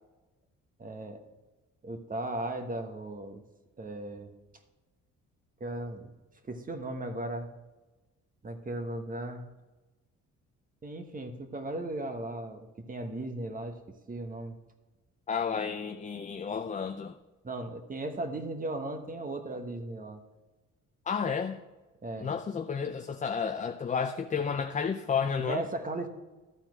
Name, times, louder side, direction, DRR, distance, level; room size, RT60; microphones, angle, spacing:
voice 1, 0.8-1.2 1.8-3.4 3.8-4.3 5.6-6.1 6.4-7.5 8.4-9.4 10.8-13.8 14.1-14.6 17.4-20.2 22.0-22.3 25.5-26.1, right 2 dB, 25° right, 7 dB, 1.2 m, -36 dB
voice 2, 15.3-17.2 21.1-21.6 22.2-25.6, left 6 dB, 25° left, 8 dB, 0.4 m, -31 dB
12.5 x 4.4 x 5.9 m, 1.2 s
cardioid pair, 90°, 30 cm